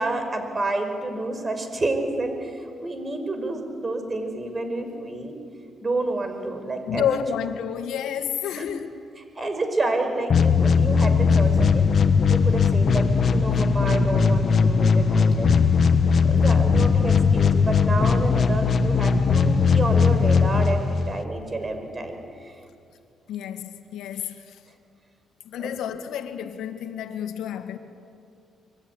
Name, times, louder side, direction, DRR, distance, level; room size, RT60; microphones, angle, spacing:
voice 1, 0.0-5.3 5.8-7.2 8.6-8.7 9.4-11.9 12.3-15.5 16.2-22.5 25.6-25.8, right 2 dB, 30° right, 5.5 m, -29 dB
voice 2, 6.9-8.9 23.3-24.6 25.5-27.8, left 9 dB, 85° left, 2.0 m, -30 dB
sound 1, 10.3-21.2, left 5 dB, 50° left, 1.3 m, -19 dB
25.0 x 23.5 x 9.8 m
cardioid pair, 90°, 0 cm